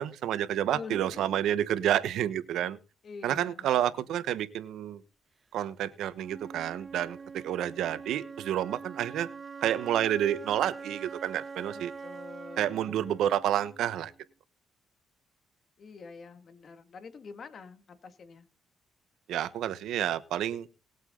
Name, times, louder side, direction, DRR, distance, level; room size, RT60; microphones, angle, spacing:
voice 1, 0.0-2.8 3.2-5.0 5.5-9.3 9.6-11.9 12.6-14.1 19.3-20.7, right 11 dB, 80° right, 15 dB, 1.1 m, -29 dB
voice 2, 0.7-1.4 3.0-4.0 12.0-12.8 15.8-18.5, left 5 dB, 50° left, 9 dB, 2.3 m, -46 dB
Wind instrument woodwind instrument, 6.2-14.2, right 5 dB, 30° right, 0.7 m, -44 dB
20.0 x 8.1 x 3.9 m, 0.31 s
cardioid pair, 90°, 0 cm